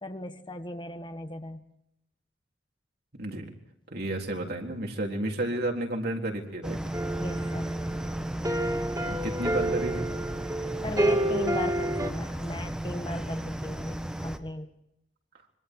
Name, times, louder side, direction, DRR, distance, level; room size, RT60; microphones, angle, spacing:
voice 1, 0.0-1.6 7.2-7.7 10.8-14.7, left 1 dB, 25° left, 8 dB, 1.3 m, -37 dB
voice 2, 3.1-3.5 3.9-6.8 9.1-10.1, right 1 dB, 60° right, 1 dB, 3.9 m, -31 dB
sound 1, 6.6-14.4, right 1 dB, 5° right, 1.6 m, -34 dB
sound 2, 6.9-12.1, right 1 dB, 20° right, 3.1 m, -29 dB
26.5 x 23.5 x 4.8 m, 0.79 s
head